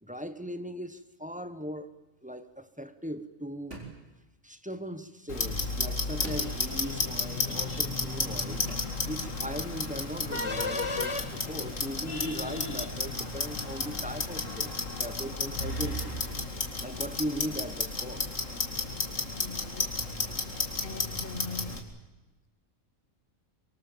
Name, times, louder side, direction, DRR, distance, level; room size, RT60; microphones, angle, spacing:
voice 1, 0.0-1.9 2.2-3.8 4.4-8.7 9.0-16.2 16.8-18.3, equal, 5° right, 1.2 m, -39 dB
sound 1, 3.7-4.1 6.2-6.7 8.0-8.1 8.7-9.0, right 3 dB, 65° right, 4.5 m, -43 dB
Clock, 5.3-21.8, left 3 dB, 75° left, 2.8 m, -33 dB
sound 2, 6.3-14.8, left 3 dB, 25° left, 1.3 m, -40 dB
voice 2, 19.3-20.2 20.8-21.8, left 3 dB, 45° left, 1.5 m, -42 dB
24.5 x 23.0 x 7.4 m
omnidirectional pair, 1.3 m